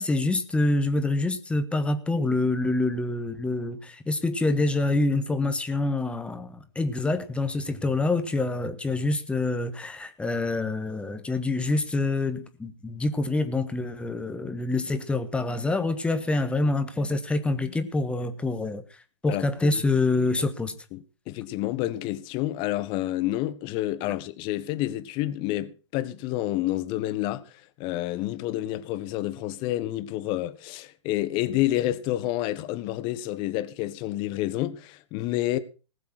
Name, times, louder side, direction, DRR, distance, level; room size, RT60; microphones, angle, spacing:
voice 1, 0.0-18.8 19.2-20.7, left 2 dB, 5° left, 1.5 m, -26 dB
voice 2, 19.3-19.8 20.9-35.6, left 15 dB, 30° left, 1.4 m, -29 dB
19.5 x 7.5 x 6.0 m
figure-of-eight pair, 115°, 16 cm